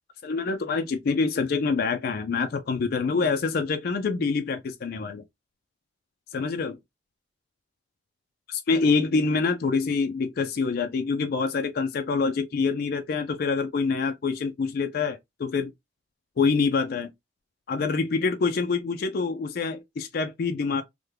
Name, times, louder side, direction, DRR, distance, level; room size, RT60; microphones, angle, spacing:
voice 1, 0.2-5.2 6.3-6.8 8.5-15.7 16.4-17.1 17.7-20.8, left 4 dB, 55° left, 0.4 m, -26 dB
3.4 x 2.1 x 3.1 m
head